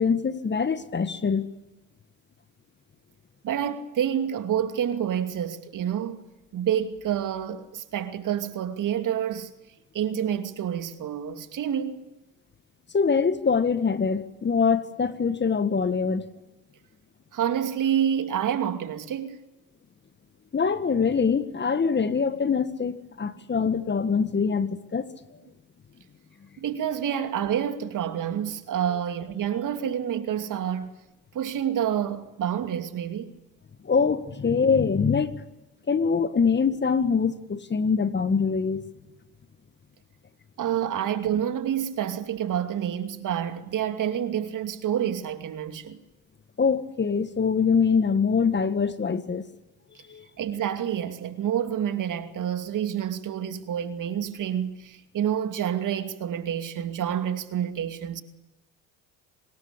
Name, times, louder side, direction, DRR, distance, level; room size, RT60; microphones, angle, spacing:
voice 1, 0.0-1.5 12.9-16.3 20.5-25.1 33.8-35.4 35.9-38.8 46.6-49.5 50.1-50.3, left 5 dB, 25° left, 1.7 m, -24 dB
voice 2, 3.4-6.2 6.5-9.5 9.9-12.0 17.3-19.4 26.6-30.9 31.3-33.3 40.6-46.0 50.4-58.2, right 9 dB, 50° right, 2.6 m, -28 dB
25.5 x 20.5 x 8.6 m
hypercardioid pair, 70°, 40 cm